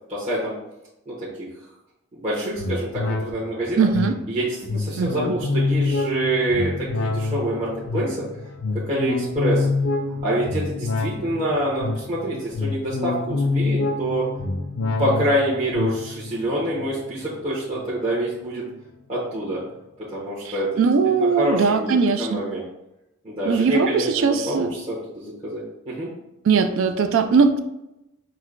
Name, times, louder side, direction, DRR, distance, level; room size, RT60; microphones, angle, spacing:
voice 1, 0.1-0.5 1.1-1.5 2.1-3.9 4.3-6.7 7.0-8.2 8.9-9.7 10.2-14.2 15.0-18.6 19.1-19.6 20.1-20.7 21.2-21.9 22.2-22.6 23.2-26.1, right 1 dB, 30° right, -10 dB, 0.9 m, -26 dB
sound 1, 2.6-18.3 18.7-18.8, left 3 dB, 75° left, 0.5 m, -27 dB
voice 2, 3.8-4.1 5.0-5.3 20.4-22.4 23.5-24.7 26.4-27.6, right 5 dB, 65° right, 8 dB, 0.3 m, -20 dB
6.1 x 2.1 x 2.4 m, 0.90 s
head